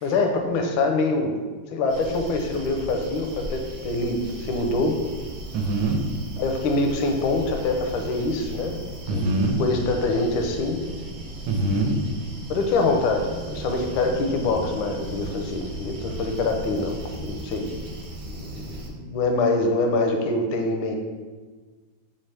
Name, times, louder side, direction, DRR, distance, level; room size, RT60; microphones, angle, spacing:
voice 1, 0.0-1.3 1.7-5.0 6.4-8.8 9.1-9.2 9.6-10.8 12.5-17.7 18.3-21.0, left 3 dB, 80° left, 4 dB, 1.3 m, -25 dB
sound 1, 1.9-18.9, right 1 dB, 65° right, 1.4 m, -37 dB
voice 2, 5.5-6.0 9.1-9.6 11.5-12.0, right 2 dB, 80° right, 1 dB, 1.5 m, -23 dB
4.2 x 3.9 x 3.3 m, 1.4 s
omnidirectional pair, 2.2 m